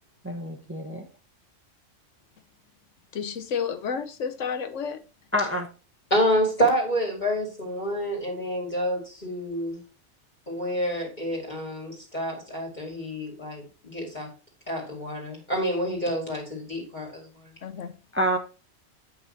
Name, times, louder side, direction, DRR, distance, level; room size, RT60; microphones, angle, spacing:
voice 1, 0.2-1.0 5.3-5.7 18.1-18.4, equal, 10° right, 4 dB, 1.1 m, -27 dB
voice 2, 3.1-5.0 17.6-17.9, left 6 dB, 75° left, 10 dB, 1.3 m, -31 dB
voice 3, 6.1-9.8 10.5-14.3 14.7-17.3, equal, 35° left, -1 dB, 2.2 m, -28 dB
8.2 x 5.5 x 4.2 m, 0.33 s
omnidirectional pair, 1.3 m